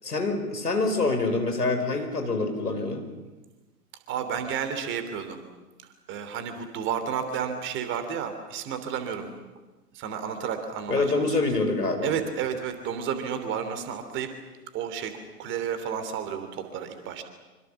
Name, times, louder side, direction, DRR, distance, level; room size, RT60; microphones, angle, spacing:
voice 1, 0.0-3.0 10.9-12.1, left 3 dB, 75° left, 6 dB, 5.1 m, -26 dB
voice 2, 4.1-5.4 6.1-9.3 9.9-11.4 12.0-14.3 14.7-15.1 15.4-17.2, right 7 dB, 25° right, 8 dB, 3.1 m, -31 dB
26.5 x 25.0 x 7.3 m, 1.2 s
figure-of-eight pair, 110°, 47 cm